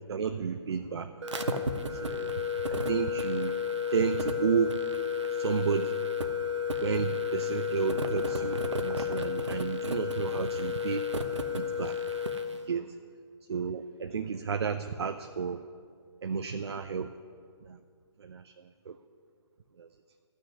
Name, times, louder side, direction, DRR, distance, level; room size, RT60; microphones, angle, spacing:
voice 1, 0.1-1.1 1.9-3.5 3.9-4.8 5.3-6.0 6.8-11.0 11.5-12.0 12.7-12.9 13.5-15.6 16.2-17.1 17.7-17.8 18.2-18.5 18.9-19.0 19.8-19.9, right 6 dB, 65° right, 8 dB, 0.6 m, -32 dB
sound 1, 1.2-12.5, left 5 dB, 80° right, 1.0 m, -32 dB
13.5 x 6.4 x 9.7 m, 2.2 s
figure-of-eight pair, 140°, 15 cm